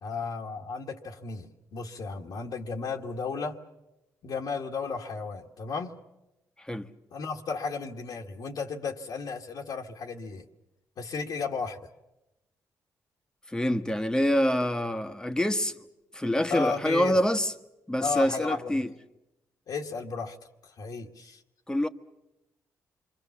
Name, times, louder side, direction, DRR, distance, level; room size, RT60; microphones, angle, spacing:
voice 1, 0.0-3.6 4.2-6.0 7.1-10.4 11.0-11.8 16.5-17.2 18.0-18.8 19.7-20.4 20.6-21.4, left 4 dB, 70° left, 1.7 m, -34 dB
voice 2, 13.5-15.8 16.1-17.5 17.9-18.9 21.7-21.9, equal, 10° left, 1.3 m, -26 dB
27.5 x 24.0 x 7.3 m
cardioid pair, 75°, 7 cm